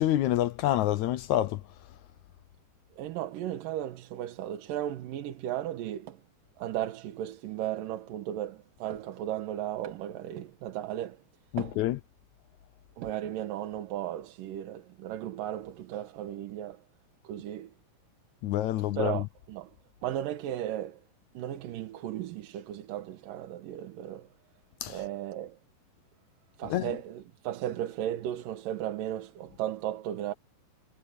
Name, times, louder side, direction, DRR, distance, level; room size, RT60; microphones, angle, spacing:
voice 1, 0.0-1.6 11.5-12.0 18.4-19.3 24.8-25.0 26.6-27.0, left 13 dB, 75° left, 1.8 m, -27 dB
voice 2, 3.0-6.2 6.6-11.2 11.6-11.8 13.0-16.8 17.2-17.7 19.0-19.7 20.0-21.0 21.3-24.3 24.9-25.6 26.6-30.3, right 12 dB, 75° right, 2.8 m, -35 dB
omnidirectional pair, 4.0 m